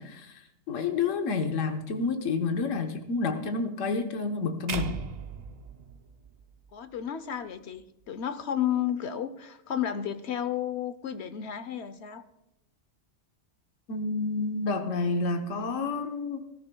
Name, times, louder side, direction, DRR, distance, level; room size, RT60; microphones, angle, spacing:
voice 1, 0.0-5.0 13.9-16.4, left 4 dB, 80° left, 5 dB, 1.3 m, -29 dB
sound 1, 4.7-6.9, right 6 dB, 50° right, 0.5 m, -38 dB
voice 2, 6.7-12.2, left 10 dB, 65° left, 12 dB, 0.9 m, -32 dB
20.0 x 13.0 x 2.2 m, 0.89 s
omnidirectional pair, 1.3 m